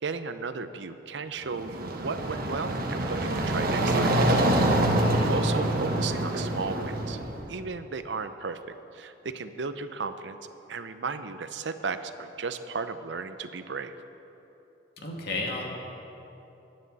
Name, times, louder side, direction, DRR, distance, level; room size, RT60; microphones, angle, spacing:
voice 1, 0.0-4.2 5.3-7.2 7.5-10.4 10.7-13.9, right 4 dB, 75° right, 10 dB, 0.6 m, -35 dB
sound 1, 1.4-7.5, right 1 dB, 55° right, 1.2 m, -26 dB
voice 2, 5.0-5.4 15.0-15.6, left 2 dB, 60° left, -1 dB, 2.3 m, -33 dB
20.5 x 9.7 x 4.1 m, 3.0 s
head